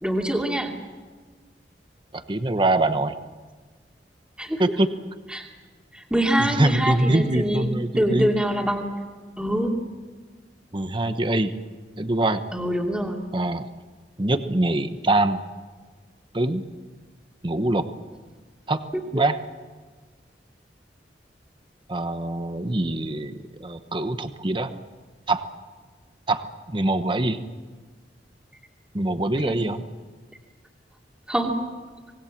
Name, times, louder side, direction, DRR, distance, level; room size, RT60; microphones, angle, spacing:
voice 1, 0.0-0.8 4.4-4.7 5.3-5.4 5.9-7.7 8.0-8.9 9.4-9.8 12.5-13.3 18.9-19.0 29.4-29.6 31.3-31.6, right 1 dB, 5° right, 0 dB, 2.7 m, -24 dB
voice 2, 2.1-3.1 4.6-4.9 6.4-8.3 10.7-11.5 12.0-12.4 13.3-13.7 14.2-15.4 16.3-16.6 17.4-17.8 18.7-18.8 19.1-19.4 21.9-23.3 23.6-24.7 25.3-25.5 26.3-27.4 28.9-29.8, right 2 dB, 30° right, 9 dB, 1.1 m, -23 dB
26.0 x 20.0 x 7.4 m, 1.4 s
head